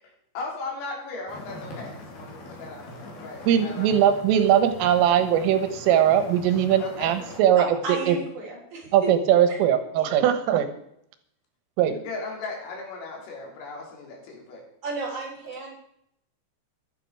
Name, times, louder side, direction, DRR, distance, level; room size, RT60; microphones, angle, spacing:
voice 1, 0.4-3.9 6.8-7.3 12.1-14.6, left 3 dB, 90° left, -1 dB, 6.0 m, -37 dB
sound 1, 1.3-7.4, left 2 dB, 55° left, 4.5 m, -42 dB
voice 2, 3.5-8.2 8.9-10.7 11.8-12.0, right 10 dB, 85° right, 9 dB, 3.8 m, -20 dB
voice 3, 7.5-9.1 10.0-10.1 14.8-15.7, right 3 dB, 40° right, -2 dB, 5.0 m, -33 dB
15.0 x 12.0 x 4.7 m, 0.73 s
omnidirectional pair, 5.7 m